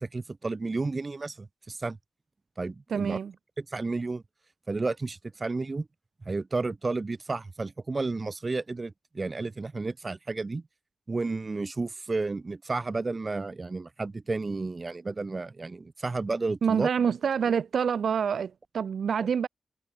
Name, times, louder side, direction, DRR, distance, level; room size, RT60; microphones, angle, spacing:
voice 1, 0.0-2.0 2.6-3.2 3.6-4.2 4.7-5.9 6.3-10.6 11.1-16.9, right 3 dB, 30° right, 2.4 m, -32 dB
voice 2, 2.9-3.3 16.6-19.5, right 7 dB, 75° right, 1.3 m, -27 dB
wide cardioid pair, 155°, 0 cm